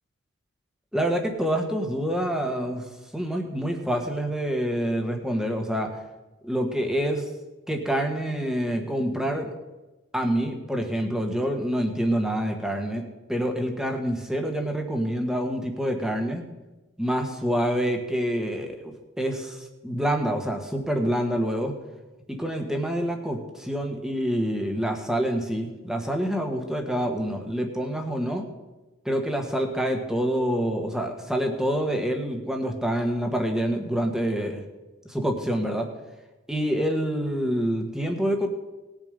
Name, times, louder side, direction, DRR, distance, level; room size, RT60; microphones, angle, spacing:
voice 1, 0.9-2.8 3.1-5.9 6.4-7.2 7.7-9.5 10.1-13.0 13.3-16.4 17.0-21.7 22.3-28.5 29.0-34.6 35.0-35.9 36.5-38.5, equal, 5° right, 3 dB, 1.4 m, -27 dB
19.5 x 7.2 x 5.2 m, 1.1 s
head